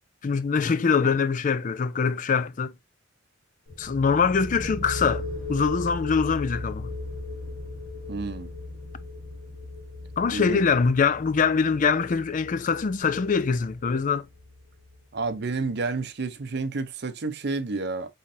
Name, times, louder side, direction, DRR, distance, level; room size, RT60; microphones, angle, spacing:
voice 1, 0.2-2.7 3.8-6.9 10.2-14.3, left 5 dB, 40° left, 0.4 m, -23 dB
sound 1, 3.7-15.2, left 2 dB, 70° left, 1.4 m, -37 dB
voice 2, 8.1-8.5 10.3-10.6 15.1-18.1, right 3 dB, 60° right, 0.6 m, -30 dB
5.6 x 3.2 x 2.6 m
head